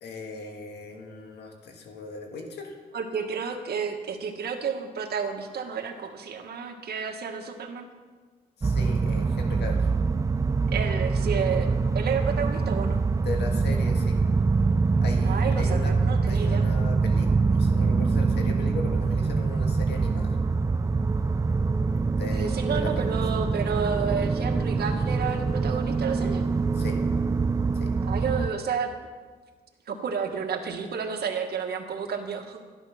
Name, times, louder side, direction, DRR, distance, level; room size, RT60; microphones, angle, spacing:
voice 1, 0.0-2.8 8.6-9.9 13.2-14.2 15.0-16.0 16.3-20.4 22.1-23.1 26.7-27.0 27.7-27.9, left 3 dB, 85° left, 2 dB, 1.8 m, -38 dB
voice 2, 2.9-7.9 10.7-13.0 15.2-16.7 22.3-26.4 28.0-28.9 29.9-32.6, right 6 dB, 75° right, 4 dB, 1.7 m, -31 dB
sound 1, 8.6-28.5, right 4 dB, 20° right, 0.3 m, -24 dB
13.0 x 11.5 x 5.9 m, 1.4 s
wide cardioid pair, 135°, 17 cm